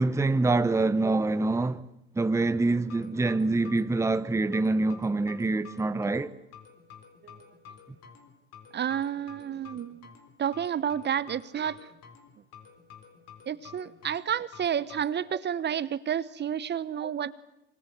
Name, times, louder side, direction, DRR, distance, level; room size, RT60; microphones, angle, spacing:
voice 1, 0.0-1.8 2.2-6.3 17.0-17.1, right 2 dB, 10° right, 0.9 m, -25 dB
sound 1, 2.9-15.1, left 7 dB, 50° left, 3.9 m, -51 dB
voice 2, 8.7-10.1 10.4-11.9 13.5-17.3, right 9 dB, 30° right, 1.0 m, -30 dB
25.0 x 25.0 x 8.0 m
hypercardioid pair, 70°, 33 cm